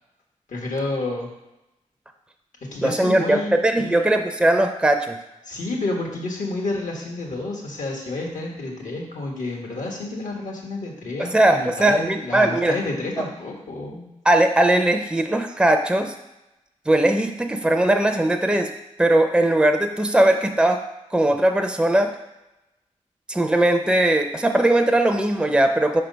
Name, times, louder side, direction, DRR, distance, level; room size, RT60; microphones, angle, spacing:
voice 1, 0.5-1.3 2.7-4.0 5.4-14.1, left 2 dB, 75° left, 0 dB, 1.5 m, -30 dB
voice 2, 2.8-5.2 11.2-12.8 13.2-13.3 14.3-16.1 16.9-18.7 19.0-20.8 21.1-22.1 23.3-26.0, right 1 dB, 5° right, 5 dB, 0.6 m, -19 dB
5.4 x 3.4 x 5.2 m, 0.95 s
cardioid pair, 45°, 13 cm